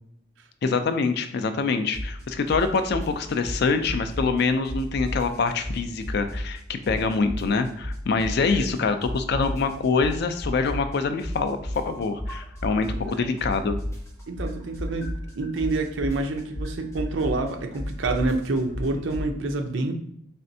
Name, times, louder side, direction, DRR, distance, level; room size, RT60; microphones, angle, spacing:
voice 1, 0.6-13.8, left 4 dB, 55° left, 8 dB, 0.4 m, -25 dB
sound 1, 1.9-2.2 2.5-4.4 4.6-6.6 6.8-8.8 9.0-13.1 13.4-19.3, equal, 15° left, 1.2 m, -32 dB
voice 2, 14.3-19.9, right 2 dB, 65° right, 5 dB, 0.6 m, -28 dB
4.2 x 3.3 x 2.7 m, 0.71 s
head